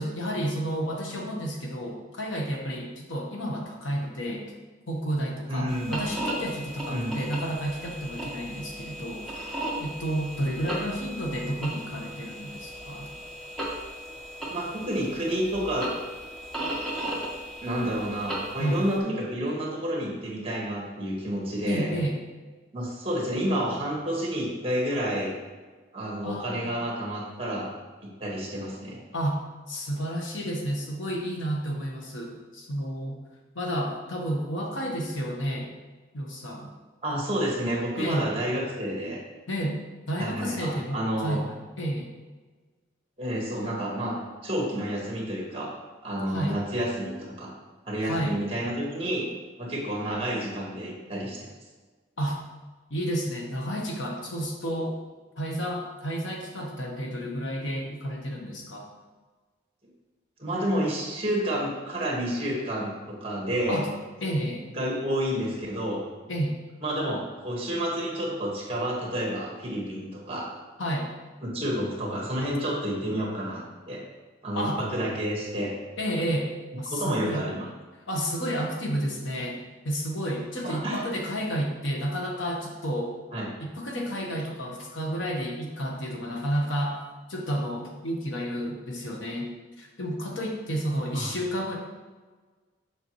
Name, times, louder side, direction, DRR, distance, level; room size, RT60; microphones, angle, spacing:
voice 1, 0.0-4.5 4.9-9.3 9.8-13.1 18.5-18.8 21.7-22.2 26.2-26.8 29.1-29.4 29.7-33.2 33.5-35.7 36.1-36.7 38.0-38.3 39.5-39.8 40.1-42.1 46.3-46.6 48.0-48.4 52.2-52.4 52.9-55.0 55.4-58.9 63.7-63.9 64.2-64.7 66.3-66.6 70.8-71.1 74.5-74.8 76.0-76.5 76.8-77.5 78.1-83.1 83.6-87.0 87.3-89.5 89.8-91.8, equal, 80° left, 0 dB, 1.1 m, -31 dB
voice 2, 5.5-6.0 6.9-7.2 14.5-15.9 17.6-21.9 22.7-25.3 25.9-27.7 28.0-29.0 37.0-39.2 40.2-41.4 43.2-44.1 44.4-45.7 46.0-47.5 47.9-49.2 49.6-51.5 60.4-63.8 64.7-66.0 66.8-70.5 71.4-74.0 74.4-75.7 76.9-77.7 80.6-81.0 83.3-83.5 91.1-91.3, equal, 30° right, -3 dB, 1.5 m, -30 dB
sound 1, 5.7-19.0, right 1 dB, ahead, 1.3 m, -36 dB
6.7 x 6.0 x 3.1 m, 1.3 s
head